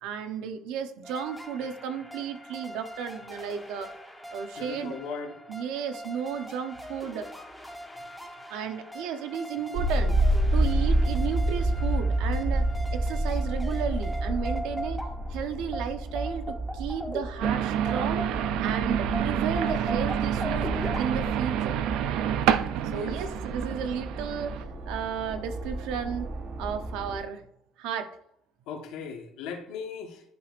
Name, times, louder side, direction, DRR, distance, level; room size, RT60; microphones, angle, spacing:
voice 1, 0.0-3.9 4.3-5.0 5.5-7.3 8.5-10.2 10.5-15.0 15.3-18.2 18.6-20.7 21.0-21.8 22.9-26.3 26.6-27.4 27.8-28.1, right 7 dB, 85° right, 7 dB, 0.8 m, -33 dB
sound 1, 1.0-18.7 19.1-21.0, equal, ahead, 0.9 m, -40 dB
voice 2, 4.6-5.4 22.9-23.2 28.7-30.2, left 5 dB, 85° left, 4 dB, 1.3 m, -38 dB
sound 2, 9.7-27.2, right 1 dB, 30° right, 0.7 m, -30 dB
sound 3, 17.4-24.6, right 10 dB, 70° right, 0.4 m, -28 dB
11.0 x 5.2 x 2.5 m, 0.72 s
cardioid pair, 180°, 0 cm